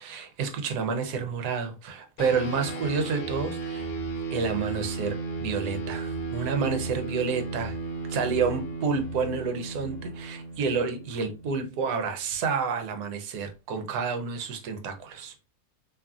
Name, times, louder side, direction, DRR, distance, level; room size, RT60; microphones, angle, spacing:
voice 1, 0.0-3.9 4.3-7.8 8.1-15.3, right 5 dB, 80° right, 1.2 m, -29 dB
sound 1, 2.2-11.9, right 3 dB, 65° left, 0.8 m, -35 dB
2.7 x 2.5 x 2.3 m
omnidirectional pair, 1.7 m